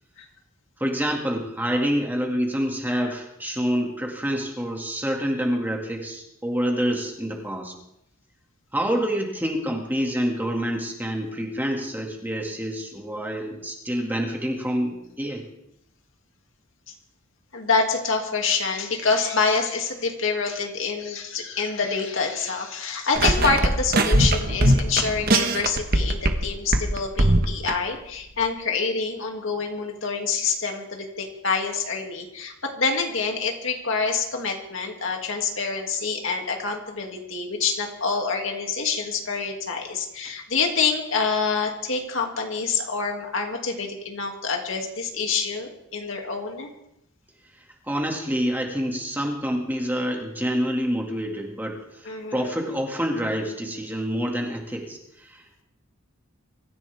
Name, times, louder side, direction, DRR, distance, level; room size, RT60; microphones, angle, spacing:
voice 1, 0.8-7.7 8.7-15.4 47.9-51.8 52.3-55.6, equal, 10° right, 0 dB, 2.3 m, -27 dB
voice 2, 17.5-46.7 52.0-52.6, left 5 dB, 65° left, 2 dB, 2.6 m, -26 dB
sound 1, 23.2-26.4 26.7-27.7, right 1 dB, 45° right, 1.4 m, -20 dB
24.0 x 15.0 x 3.6 m, 0.80 s
head